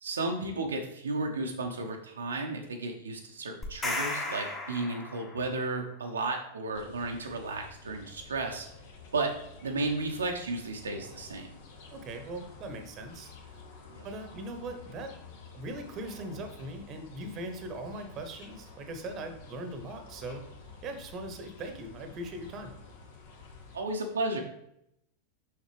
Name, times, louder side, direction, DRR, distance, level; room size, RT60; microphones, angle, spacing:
voice 1, 0.0-8.7 9.1-9.3 9.6-11.6 13.9-14.1 23.7-24.4, right 2 dB, 70° right, 2 dB, 0.8 m, -33 dB
sound 1, 3.6-5.6, left 2 dB, 20° left, 1.3 m, -35 dB
sound 2, 6.7-23.8, left 4 dB, 55° left, 1.1 m, -50 dB
voice 2, 11.9-13.6 14.0-20.4 20.8-22.7, right 1 dB, 35° right, 6 dB, 1.0 m, -40 dB
6.5 x 5.6 x 3.3 m, 0.77 s
figure-of-eight pair, 90°, 0 cm